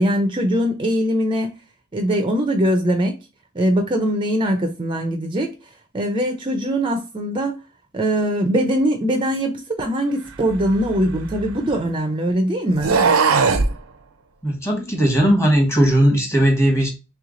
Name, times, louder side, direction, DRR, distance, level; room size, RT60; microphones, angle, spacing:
voice 1, 0.0-1.5 1.9-3.1 3.5-5.5 5.9-7.6 7.9-12.9, equal, 25° right, 0.5 m, -21 dB
sound 1, 10.5-12.0 12.7-13.7, right 4 dB, 70° right, 0.5 m, -20 dB
voice 2, 14.4-16.9, equal, 15° left, 1.2 m, -17 dB
3.4 x 3.1 x 3.7 m
head